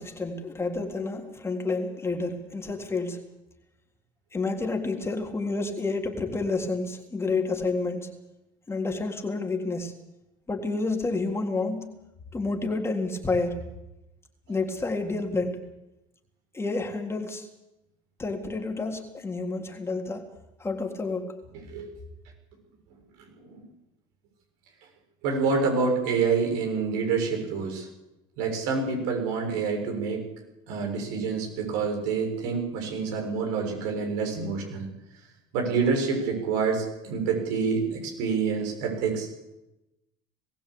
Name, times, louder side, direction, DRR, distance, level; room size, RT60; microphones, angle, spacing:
voice 1, 0.0-3.2 4.3-8.1 8.7-9.9 10.5-11.9 12.3-13.6 14.5-15.7 16.5-17.5 18.2-20.3 20.6-21.4, left 3 dB, 20° left, 3 dB, 3.7 m, -29 dB
voice 2, 23.2-23.6 25.2-27.9 28.4-30.2 30.7-34.9 35.5-39.3, right 5 dB, 80° right, 2 dB, 6.9 m, -27 dB
21.0 x 16.0 x 8.6 m, 0.94 s
supercardioid pair, 95°, 14 cm